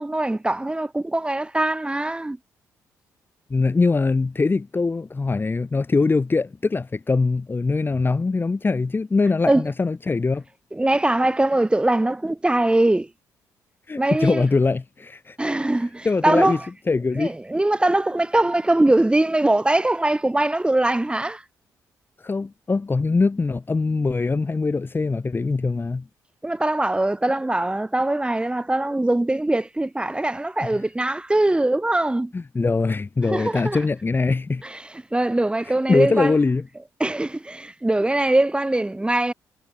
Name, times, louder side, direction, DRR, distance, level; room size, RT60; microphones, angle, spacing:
voice 1, 0.0-2.4 9.5-9.6 10.7-13.1 14.0-14.4 15.4-16.6 17.1-21.4 26.4-32.3 33.2-33.8 34.6-36.3 37.0-39.3, right 2 dB, 15° right, 4.7 m, -22 dB
voice 2, 3.5-10.4 13.9-15.4 16.0-16.6 16.9-17.3 22.2-26.1 30.6-30.8 32.3-34.6 35.9-36.7, left 3 dB, 30° left, 3.7 m, -22 dB
supercardioid pair, 60°, 7 cm